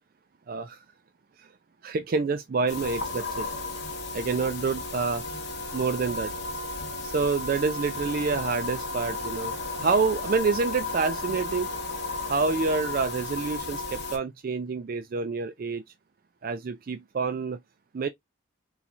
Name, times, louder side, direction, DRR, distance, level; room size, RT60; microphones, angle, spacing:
voice 1, 0.5-0.8 1.8-3.5 4.1-5.2 5.7-6.3 7.0-9.5 9.8-11.7 12.3-15.8 16.4-17.6 17.9-18.1, right 4 dB, 45° right, 0.3 m, -27 dB
sound 1, 2.7-14.2, left 3 dB, 55° left, 1.0 m, -34 dB
4.2 x 2.3 x 2.4 m
head